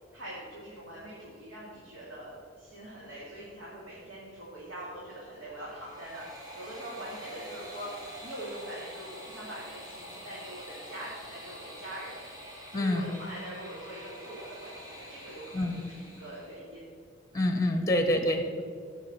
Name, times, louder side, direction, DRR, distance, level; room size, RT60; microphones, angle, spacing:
voice 1, 0.1-7.9 8.2-12.2 12.7-16.9 17.8-18.0, right 1 dB, 75° right, -7 dB, 2.5 m, -43 dB
sound 1, 5.5-16.6, equal, 20° right, 2.0 m, -46 dB
voice 2, 12.7-13.1 15.5-15.8 17.3-18.6, left 1 dB, 15° left, 5 dB, 0.9 m, -27 dB
16.0 x 6.1 x 4.3 m, 2.1 s
head